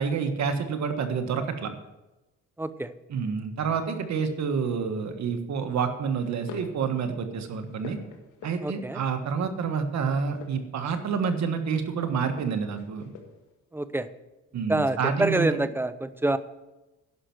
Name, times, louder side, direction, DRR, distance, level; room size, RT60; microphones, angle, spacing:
voice 1, 0.0-1.7 3.1-8.0 8.4-13.1 14.5-15.6, right 6 dB, 65° right, 7 dB, 1.5 m, -28 dB
voice 2, 2.6-2.9 8.6-9.0 13.7-14.1 14.7-16.4, right 2 dB, 5° right, 13 dB, 0.6 m, -26 dB
sound 1, 5.0-5.3 6.2-6.8 7.3-8.9 10.2-11.7 12.3-13.5, left 5 dB, 90° left, 1.7 m, -46 dB
11.5 x 5.8 x 7.8 m, 1.0 s
cardioid pair, 90°, 30 cm